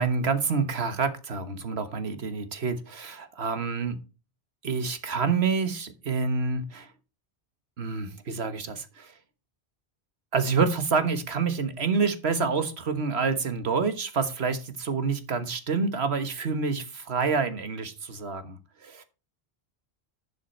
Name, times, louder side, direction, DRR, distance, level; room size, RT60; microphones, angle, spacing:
voice 1, 0.0-4.0 4.6-6.9 7.8-9.1 10.3-19.0, right 5 dB, 70° right, 10 dB, 1.6 m, -28 dB
11.5 x 6.1 x 4.4 m, 0.31 s
omnidirectional pair, 1.1 m